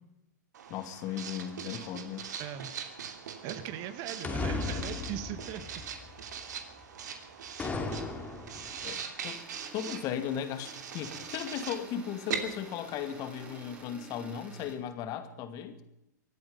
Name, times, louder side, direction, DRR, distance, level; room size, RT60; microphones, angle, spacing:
Writing, 0.5-13.8, right 7 dB, 70° right, 2.8 m, -42 dB
voice 1, 0.7-2.3 8.8-9.4 9.7-15.8, left 9 dB, 40° left, 9 dB, 2.2 m, -37 dB
sound 1, 2.2-2.3 4.2-6.4 7.6-8.9, left 4 dB, 15° left, 2.5 m, -36 dB
voice 2, 2.4-2.7 3.4-5.8, right 11 dB, 40° right, 12 dB, 1.8 m, -39 dB
sound 2, 9.3-14.8, right 3 dB, 10° right, 3.5 m, -52 dB
24.5 x 9.5 x 5.5 m, 0.85 s
hypercardioid pair, 120°, 10 cm